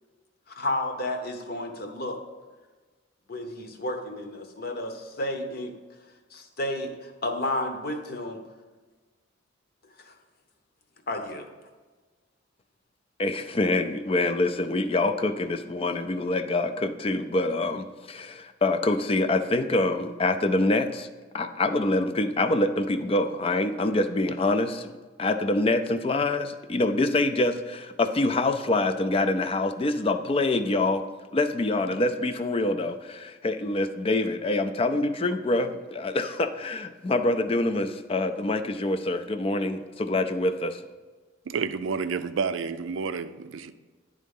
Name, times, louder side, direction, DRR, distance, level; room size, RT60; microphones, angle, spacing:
voice 1, 0.5-2.2 3.3-5.7 6.3-8.4 10.0-10.1 11.1-11.5, left 1 dB, 50° left, 5 dB, 0.9 m, -32 dB
voice 2, 13.2-21.1 21.3-24.9 25.2-31.0 31.3-40.8, left 2 dB, 30° left, 9 dB, 0.4 m, -25 dB
voice 3, 41.5-43.7, right 5 dB, 80° right, 11 dB, 0.4 m, -30 dB
10.5 x 3.7 x 5.4 m, 1.3 s
head